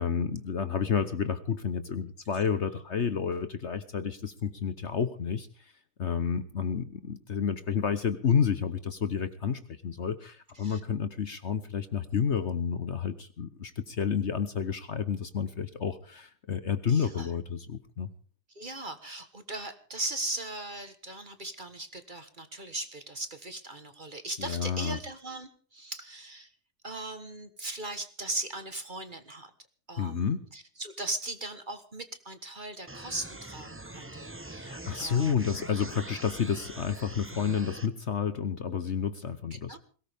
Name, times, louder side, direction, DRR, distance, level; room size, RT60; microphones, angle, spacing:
voice 1, 0.0-5.7 6.0-18.1 24.4-25.0 30.0-30.4 34.6-39.8, left 7 dB, 50° left, 11 dB, 1.1 m, -30 dB
voice 2, 16.9-17.3 18.5-26.5 26.8-29.5 29.9-35.5 39.5-39.8, right 2 dB, 30° right, 9 dB, 1.4 m, -39 dB
sound 1, 32.9-37.9, right 1 dB, 10° right, 0.8 m, -43 dB
21.5 x 18.0 x 3.6 m, 0.41 s
omnidirectional pair, 1.7 m